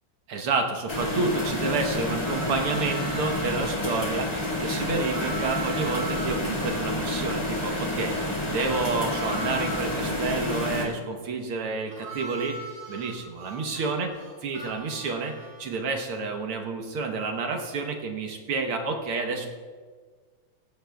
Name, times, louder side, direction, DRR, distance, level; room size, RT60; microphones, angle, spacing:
voice 1, 0.3-12.6 12.9-14.1 14.4-15.3 15.6-19.5, right 4 dB, 65° right, 3 dB, 1.4 m, -29 dB
sound 1, 0.9-10.9, left 1 dB, 15° left, 1.5 m, -29 dB
Harmonica, 2.1-3.6 4.9-9.9 11.9-15.8, right 2 dB, 20° right, 4.0 m, -40 dB
16.5 x 16.0 x 2.3 m, 1.5 s
omnidirectional pair, 3.6 m